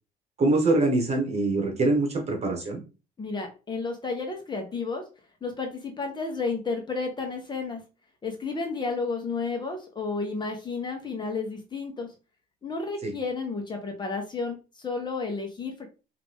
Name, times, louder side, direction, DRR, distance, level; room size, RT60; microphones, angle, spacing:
voice 1, 0.4-2.8 13.0-13.1, right 2 dB, 40° right, 3 dB, 1.6 m, -24 dB
voice 2, 3.2-5.0 5.4-7.8 8.2-12.1 12.6-15.9, left 4 dB, 25° left, 3 dB, 1.2 m, -32 dB
4.8 x 2.9 x 3.6 m, 0.32 s
cardioid pair, 110°, 17 cm